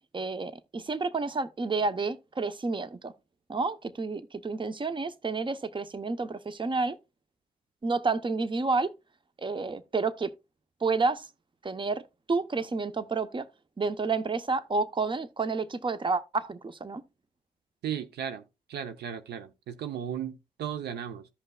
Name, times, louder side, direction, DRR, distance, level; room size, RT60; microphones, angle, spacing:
voice 1, 0.1-3.1 3.5-7.0 7.8-8.9 9.4-10.3 10.8-11.3 11.6-12.0 12.3-13.5 13.8-17.0, right 4 dB, 30° right, 0.8 m, -30 dB
voice 2, 17.8-18.4 18.7-21.3, right 9 dB, 80° right, 0.8 m, -35 dB
14.5 x 5.4 x 2.3 m
supercardioid pair, 50°, 17 cm